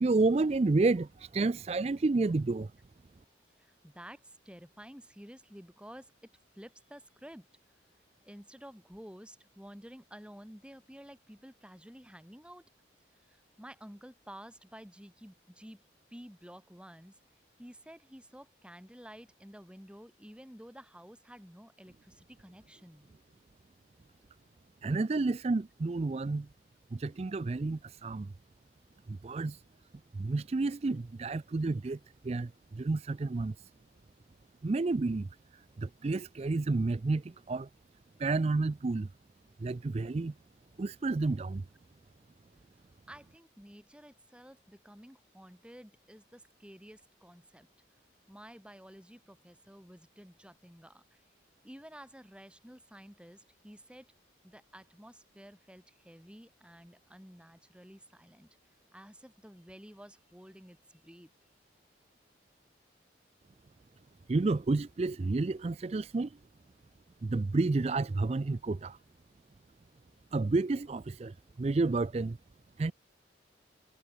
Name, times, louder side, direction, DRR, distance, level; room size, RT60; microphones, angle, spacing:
voice 1, 0.0-2.7 24.8-26.5 26.9-28.3 29.1-29.6 30.1-32.0 32.2-33.5 34.6-35.3 35.8-37.7 38.2-39.1 39.6-40.3 40.8-41.6 64.3-66.4 67.2-69.0 70.3-72.4 72.8-72.9, right 3 dB, 35° right, 0.4 m, -30 dB
voice 2, 3.6-6.1 6.6-7.5 8.2-12.7 13.1-15.8 16.1-17.2 17.6-23.1 43.1-47.7 48.3-51.2 51.6-54.1 54.4-58.5 58.9-61.3, equal, 5° right, 5.3 m, -52 dB
head